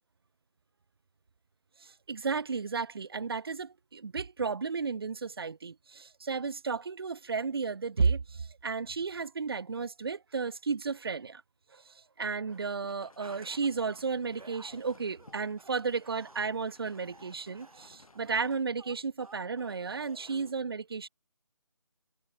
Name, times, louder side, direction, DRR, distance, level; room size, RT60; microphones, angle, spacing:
voice 1, 1.8-11.4 11.7-21.1, right 5 dB, 45° right, 0.9 m, -33 dB
sound 1, 12.5-18.6, left 3 dB, 80° left, 4.5 m, -59 dB
sound 2, 12.6-12.7 13.0-13.9 14.3-20.5, right 3 dB, 80° right, 6.5 m, -55 dB
figure-of-eight pair, 170°, 18 cm